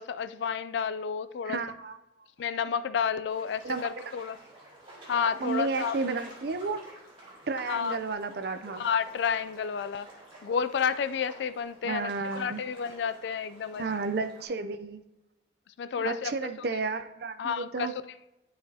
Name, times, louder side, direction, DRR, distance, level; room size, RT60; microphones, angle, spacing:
voice 1, 0.0-1.6 2.4-4.4 5.1-6.0 7.7-8.0 8.8-10.1 10.4-13.8 15.8-16.3 16.6-16.7 17.4-17.9, left 7 dB, 70° left, 14 dB, 0.3 m, -30 dB
voice 2, 1.4-2.0 3.6-3.9 5.4-6.8 7.5-8.8 11.8-12.6 13.8-15.0 16.0-17.9, right 4 dB, 55° right, 9 dB, 0.5 m, -32 dB
sound 1, 3.3-14.4, right 1 dB, 30° right, 2.7 m, -49 dB
11.5 x 5.0 x 2.8 m, 0.96 s
head